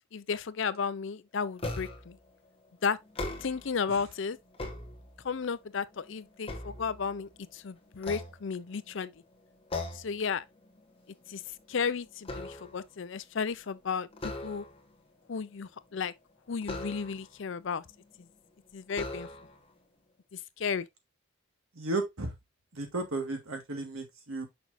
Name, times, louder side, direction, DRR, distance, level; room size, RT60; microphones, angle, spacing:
voice 1, 0.1-2.2 2.8-3.0 3.4-4.4 5.2-9.1 9.9-10.4 11.3-11.4 11.7-14.6 15.3-16.1 16.5-17.8 18.7-19.3 20.6-20.9, left 5 dB, 60° left, 0.5 m, -33 dB
sound 1, 1.6-2.2 3.0-3.8 4.3-5.4 5.9-7.4 8.0-8.9 9.7-10.2 10.6-10.8 11.2-12.9 14.1-14.9 16.6-17.4 18.2-18.3 18.9-19.7, left 2 dB, 25° left, 1.2 m, -40 dB
voice 2, 21.7-22.3 22.7-24.5, right 2 dB, 80° right, 1.8 m, -34 dB
6.1 x 6.0 x 2.6 m
head